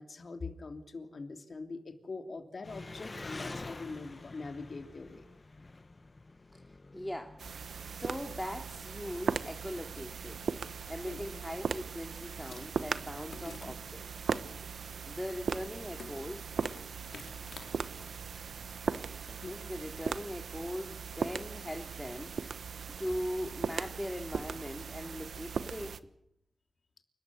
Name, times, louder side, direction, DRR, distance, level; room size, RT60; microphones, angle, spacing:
voice 1, 0.0-5.3 11.1-11.4 13.4-13.7 19.4-19.6, left 3 dB, 60° left, 6 dB, 3.1 m, -43 dB
Engine, 2.6-12.8, left 3 dB, 40° left, 1.2 m, -49 dB
voice 2, 6.5-7.4 7.7-14.1 15.0-16.5 18.9-26.0, equal, 10° left, 3 dB, 2.6 m, -41 dB
sound 1, 7.4-26.0, right 6 dB, 85° right, 1.0 m, -38 dB
Insect, 12.3-19.1, left 4 dB, 80° left, 3.1 m, -54 dB
29.0 x 13.0 x 9.5 m, 0.75 s
cardioid pair, 65°, 0 cm